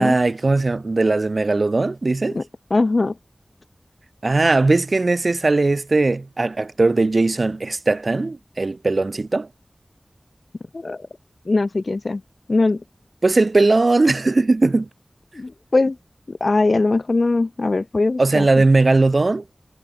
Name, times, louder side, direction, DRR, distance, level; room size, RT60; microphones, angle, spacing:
voice 1, 0.0-2.4 4.2-9.5 13.2-14.9 18.2-19.4, right 3 dB, 65° right, 0.5 m, -19 dB
voice 2, 2.7-3.1 10.7-11.1 11.5-12.2 12.5-12.8 15.3-16.0 16.3-18.5, left 3 dB, 65° left, 0.9 m, -20 dB
wide cardioid pair, 50°, 0 cm